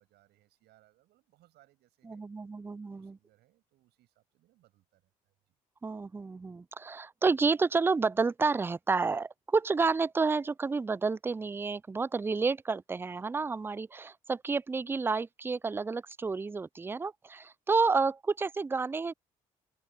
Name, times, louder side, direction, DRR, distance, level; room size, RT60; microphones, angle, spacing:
voice 1, 0.0-2.2 2.8-5.5, right 16 dB, 65° right, 6.4 m, -67 dB
voice 2, 2.1-3.2 5.8-19.1, right 4 dB, 10° right, 0.3 m, -30 dB
hypercardioid pair, 50°, 18 cm